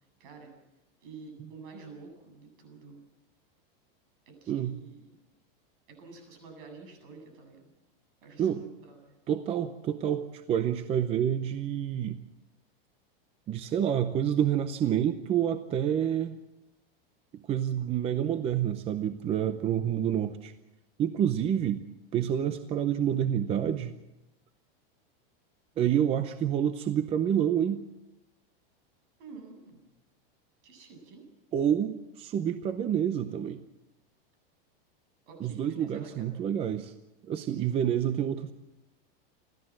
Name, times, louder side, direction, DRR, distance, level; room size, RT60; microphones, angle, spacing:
voice 1, 0.2-0.5 1.0-3.0 4.3-5.1 5.9-7.7 8.2-9.2 29.2-29.8 30.6-31.3 35.3-36.3 37.5-37.9, right 4 dB, 60° right, 5 dB, 8.0 m, -49 dB
voice 2, 9.3-12.2 13.5-16.4 17.5-20.5 21.0-21.8 22.1-23.9 25.8-27.8 31.5-33.6 35.4-36.9 37.2-38.5, right 9 dB, 20° right, 11 dB, 0.7 m, -28 dB
29.5 x 13.5 x 7.5 m, 0.95 s
supercardioid pair, 160°, 30 cm